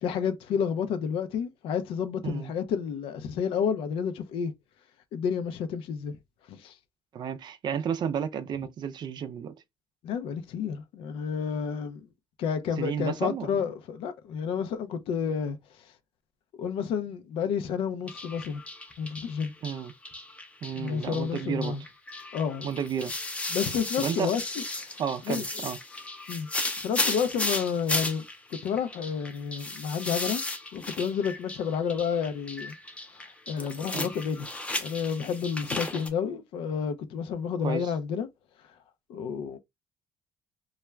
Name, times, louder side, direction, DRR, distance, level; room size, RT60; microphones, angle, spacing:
voice 1, 0.0-4.5 5.1-6.2 6.5-6.7 10.0-12.1 12.4-15.6 16.6-18.6 19.0-19.5 20.7-21.8 22.3-22.7 23.5-24.6 25.3-25.4 26.3-26.5 26.8-28.2 28.5-30.4 30.7-32.7 33.5-34.5 34.8-38.3 39.1-39.6, left 7 dB, 75° left, 0.5 m, -30 dB
voice 2, 7.1-9.5 12.8-13.6 19.6-19.9 20.6-21.8 22.6-23.1 24.0-24.3 25.0-25.8 33.9-34.1 37.6-37.9, right 8 dB, 50° right, 0.4 m, -32 dB
sound 1, 18.1-36.1, left 2 dB, 15° left, 0.5 m, -35 dB
2.3 x 2.1 x 3.1 m
cardioid pair, 100°, 9 cm